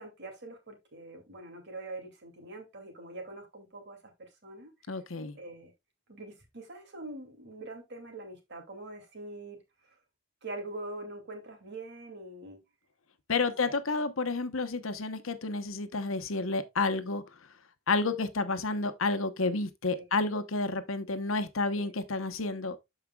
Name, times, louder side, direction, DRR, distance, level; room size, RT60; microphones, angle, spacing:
voice 1, 0.0-5.0 5.3-5.7 6.1-10.0 10.4-12.6 13.4-13.7 19.9-20.1 21.8-22.0, right 2 dB, 55° right, 2.5 m, -44 dB
voice 2, 4.9-5.4 13.3-17.2 17.9-22.8, left 3 dB, 75° left, 0.9 m, -30 dB
13.0 x 5.0 x 2.3 m
head